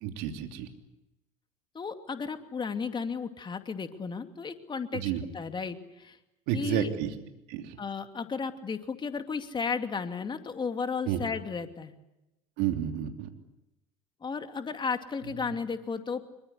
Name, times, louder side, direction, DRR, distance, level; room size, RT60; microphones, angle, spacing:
voice 1, 0.0-0.7 4.9-5.2 6.5-7.1 7.5-7.8 11.1-11.2 12.6-13.3, right 11 dB, 60° right, 5 dB, 3.2 m, -30 dB
voice 2, 1.7-5.0 5.3-6.2 6.5-6.9 7.8-11.9 14.2-16.2, left 5 dB, 25° left, 7 dB, 2.5 m, -34 dB
25.5 x 23.5 x 8.3 m, 0.92 s
hypercardioid pair, 75°, 18 cm